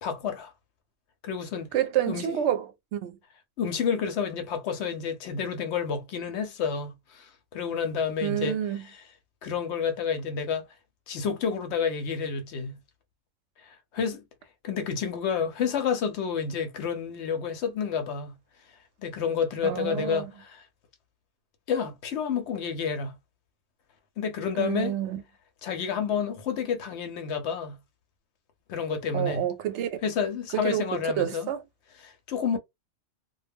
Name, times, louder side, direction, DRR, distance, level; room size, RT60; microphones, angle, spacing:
voice 1, 0.0-0.5 1.2-1.7 2.1-2.4 3.6-9.0 9.4-10.7 11.1-12.8 13.6-14.2 14.6-18.3 19.0-20.7 21.7-23.2 24.2-24.9 25.6-27.8 28.7-29.4 30.0-31.5 32.0-32.6, left 6 dB, 65° left, 0.8 m, -30 dB
voice 2, 1.7-3.2 8.2-8.8 19.6-20.3 24.5-25.2 29.1-30.0 30.5-31.6, right 10 dB, 70° right, 0.8 m, -29 dB
2.2 x 2.0 x 3.4 m
omnidirectional pair, 1.3 m